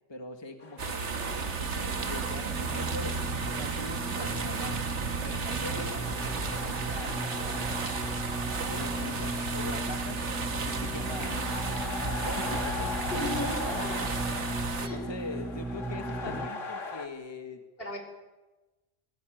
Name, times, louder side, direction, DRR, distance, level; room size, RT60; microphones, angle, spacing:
voice 1, 0.1-3.2 3.6-4.8 5.2-8.1 8.6-10.2 10.6-12.8 14.9-17.6, left 2 dB, 20° left, 6 dB, 1.7 m, -42 dB
sound 1, 0.6-17.1, left 3 dB, 90° left, 2.2 m, -42 dB
sound 2, 0.8-14.9, right 4 dB, 70° right, 1.8 m, -33 dB
sound 3, 1.3-16.5, right 1 dB, 5° right, 1.3 m, -38 dB
voice 2, 5.5-5.8 13.1-14.1 14.8-15.0 17.8-18.0, left 1 dB, 50° left, 3 dB, 5.2 m, -35 dB
27.0 x 16.5 x 9.2 m, 1.1 s
omnidirectional pair, 1.3 m